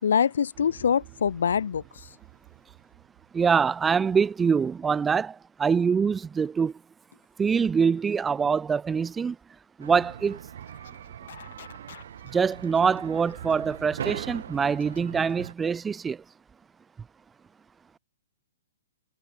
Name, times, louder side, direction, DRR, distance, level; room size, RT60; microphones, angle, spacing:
voice 1, 0.0-2.1, left 7 dB, 75° left, 2.1 m, -24 dB
sound 1, 0.5-3.9, right 40 dB or more, 30° right, 5.1 m, -52 dB
voice 2, 3.3-6.7 7.4-9.3 9.8-10.4 12.3-16.2, right 6 dB, 10° right, 1.4 m, -24 dB
sound 2, 9.8-15.5, right 9 dB, 60° right, 5.1 m, -40 dB
sound 3, 10.6-15.3, left 10 dB, 55° left, 5.9 m, -51 dB
hypercardioid pair, 165°, 0 cm